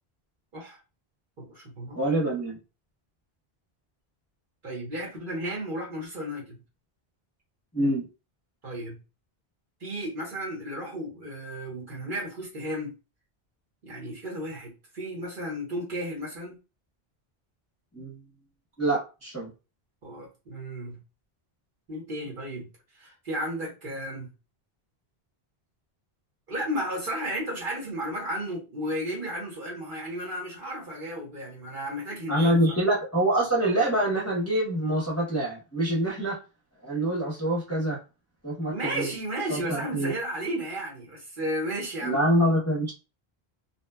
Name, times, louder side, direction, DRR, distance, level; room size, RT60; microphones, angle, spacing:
voice 1, 1.4-2.0 4.6-6.6 8.6-9.0 9.8-12.9 13.8-16.6 20.0-21.0 21.9-22.7 23.0-24.3 26.5-32.7 38.7-42.2, equal, 55° right, 1.2 m, -33 dB
voice 2, 1.9-2.6 7.7-8.0 17.9-18.2 18.8-19.5 32.3-36.4 36.8-38.0 38.4-39.1 39.5-40.1 42.0-42.9, right 1 dB, 15° left, 0.7 m, -25 dB
2.8 x 2.3 x 2.2 m
omnidirectional pair, 1.1 m